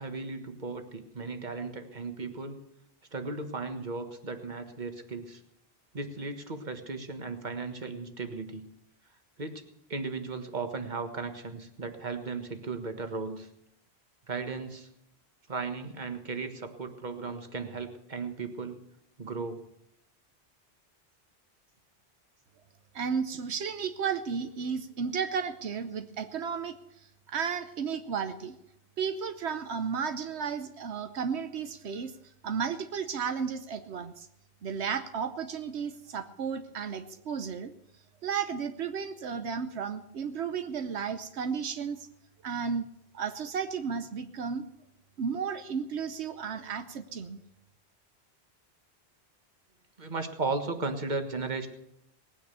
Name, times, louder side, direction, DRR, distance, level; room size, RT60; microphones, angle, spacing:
voice 1, 0.0-2.6 3.1-5.4 5.9-8.6 9.4-13.5 14.3-14.9 15.5-18.8 19.2-19.6 50.0-51.7, right 4 dB, 45° right, 7 dB, 1.6 m, -36 dB
voice 2, 22.9-26.8 27.3-28.5 29.0-32.1 32.4-34.3 34.6-37.7 38.2-42.1 42.4-42.9 43.1-44.7 45.2-47.4, right 6 dB, 85° right, 9 dB, 1.1 m, -33 dB
19.0 x 9.4 x 6.9 m, 0.78 s
omnidirectional pair, 1.1 m